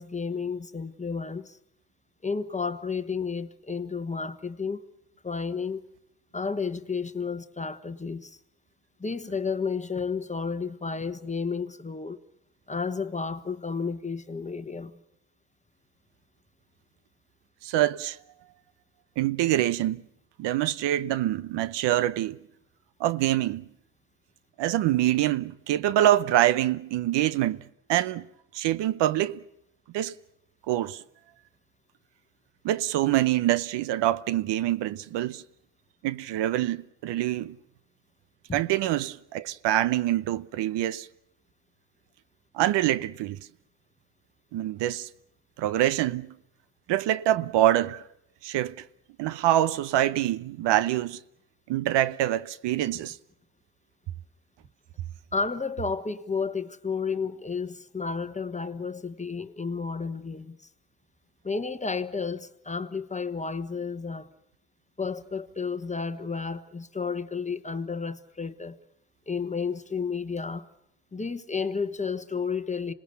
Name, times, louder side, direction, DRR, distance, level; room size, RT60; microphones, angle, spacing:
voice 1, 0.0-1.6 2.2-4.8 5.2-5.8 6.3-8.4 9.0-12.2 12.7-14.9 38.5-38.6 55.3-60.6 61.4-64.3 65.0-68.8 69.3-70.7 71.1-72.9, left 5 dB, 15° left, 1.2 m, -32 dB
voice 2, 17.6-18.2 19.2-20.0 20.4-22.4 23.0-23.7 24.6-27.6 27.9-28.3 28.5-29.4 29.9-30.1 30.7-31.0 32.6-35.4 36.0-37.6 38.5-41.1 42.5-43.4 44.5-45.1 45.6-46.4 46.9-48.0 48.4-48.8 49.2-51.2 51.7-53.2, right 13 dB, 70° right, 0.8 m, -25 dB
27.0 x 19.5 x 6.9 m
supercardioid pair, 80°, 44 cm